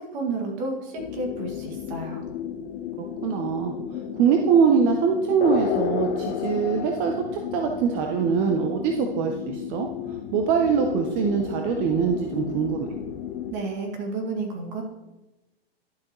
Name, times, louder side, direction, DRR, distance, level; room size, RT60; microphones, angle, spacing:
voice 1, 0.0-2.2 13.5-14.8, right 3 dB, 45° right, 1 dB, 2.1 m, -31 dB
sound 1, 1.0-13.5, left 9 dB, 60° left, 1.0 m, -32 dB
voice 2, 3.0-3.7 4.1-7.1 7.5-12.9, right 6 dB, 25° right, 3 dB, 0.6 m, -23 dB
11.5 x 6.1 x 3.0 m, 1.0 s
hypercardioid pair, 145°, 31 cm